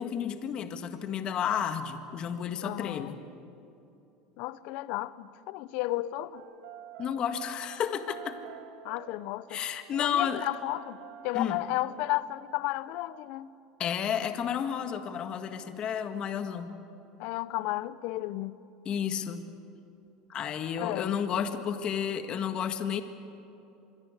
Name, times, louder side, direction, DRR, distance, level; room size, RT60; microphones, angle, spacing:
voice 1, 0.0-3.2 7.0-8.4 9.5-10.5 11.3-11.6 13.8-16.8 18.9-19.5 20.3-23.0, left 8 dB, 40° left, 1.8 m, -32 dB
voice 2, 2.6-3.2 4.4-6.4 8.8-9.6 10.0-11.0 11.2-13.5 17.2-18.5 20.8-21.1, left 16 dB, 65° left, 0.9 m, -33 dB
sound 1, 6.3-12.2, right 10 dB, 75° right, 1.8 m, -48 dB
26.0 x 22.5 x 8.3 m
supercardioid pair, 115°, 2 cm